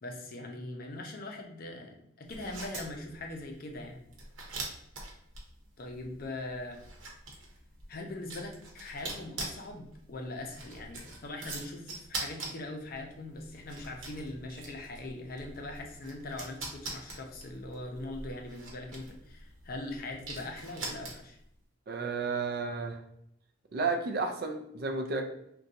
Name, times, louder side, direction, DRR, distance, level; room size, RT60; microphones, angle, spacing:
voice 1, 0.0-4.0 5.8-6.8 7.9-21.4, left 2 dB, 45° left, 2 dB, 0.5 m, -41 dB
sound 1, 2.2-21.5, right 2 dB, 80° right, 0.9 m, -44 dB
voice 2, 21.9-23.0 23.7-25.2, right 4 dB, 50° right, 5 dB, 0.4 m, -32 dB
2.6 x 2.2 x 3.9 m, 0.75 s
head